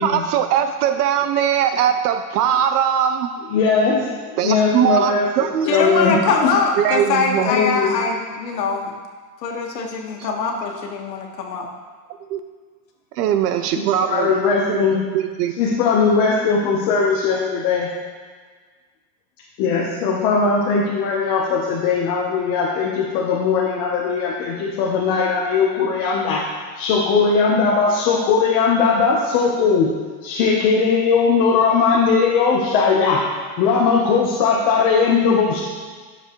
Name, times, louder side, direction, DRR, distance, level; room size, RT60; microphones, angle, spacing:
voice 1, 0.0-3.3 4.4-5.9 6.8-7.5 10.2-10.3 12.3-12.4 13.2-14.3 14.7-14.8 15.1-15.6, right 9 dB, 70° right, 8 dB, 0.7 m, -20 dB
voice 2, 3.5-5.3 5.7-6.5 7.4-8.0 14.0-15.0 15.6-17.9 19.6-26.4 26.8-29.9 30.2-33.2 33.6-35.6, left 5 dB, 30° left, -4 dB, 0.9 m, -19 dB
voice 3, 5.7-8.9 9.4-11.7, left 4 dB, 85° left, 1 dB, 1.6 m, -22 dB
11.0 x 7.0 x 3.1 m, 1.5 s
supercardioid pair, 165°, 49 cm